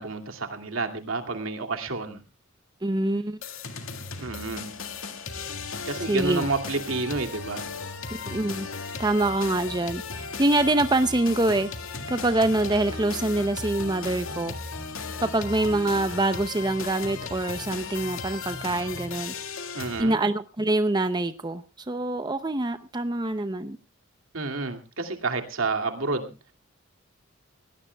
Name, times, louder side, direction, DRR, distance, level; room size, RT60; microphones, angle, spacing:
voice 1, 0.0-2.2 4.2-4.8 5.9-7.7 19.7-20.1 24.3-26.3, right 3 dB, 80° right, 2.5 m, -30 dB
voice 2, 2.8-3.4 6.1-6.5 8.1-8.7 9.0-11.7 12.1-14.5 15.2-19.3 20.0-23.8, right 2 dB, 20° right, 0.6 m, -25 dB
sound 1, 3.4-20.0, left 4 dB, 80° left, 2.0 m, -36 dB
22.0 x 17.5 x 2.3 m
head